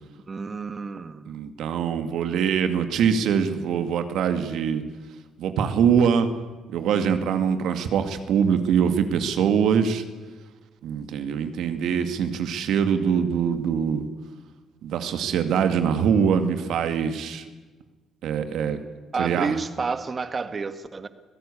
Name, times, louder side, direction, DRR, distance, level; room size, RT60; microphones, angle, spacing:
voice 1, 0.3-1.4 19.1-21.1, right 4 dB, 40° right, 10 dB, 1.9 m, -30 dB
voice 2, 1.3-4.8 5.4-6.3 6.7-10.0 10.8-14.0 14.8-17.4 18.2-18.8 19.2-19.6, right 7 dB, 75° right, 8 dB, 2.2 m, -23 dB
25.0 x 17.0 x 8.5 m, 1.3 s
supercardioid pair, 55°, 0 cm